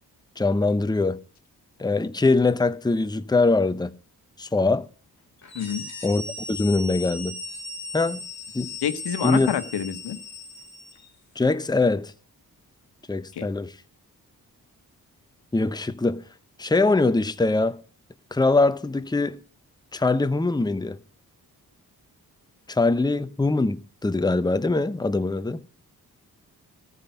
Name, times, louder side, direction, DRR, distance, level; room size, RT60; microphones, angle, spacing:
voice 1, 0.4-1.2 1.8-3.9 4.4-4.8 6.0-6.2 6.5-7.4 7.9-8.2 8.5-8.7 9.2-9.5 11.4-12.1 13.1-13.7 15.5-16.2 16.6-17.8 18.3-19.4 19.9-21.0 22.7-25.6, left 3 dB, 10° left, 0.8 m, -22 dB
sound 1, 5.4-11.1, left 2 dB, 45° left, 2.8 m, -37 dB
voice 2, 8.8-10.2 13.3-13.5, left 9 dB, 85° left, 1.2 m, -27 dB
14.0 x 5.5 x 9.2 m
cardioid pair, 50°, 39 cm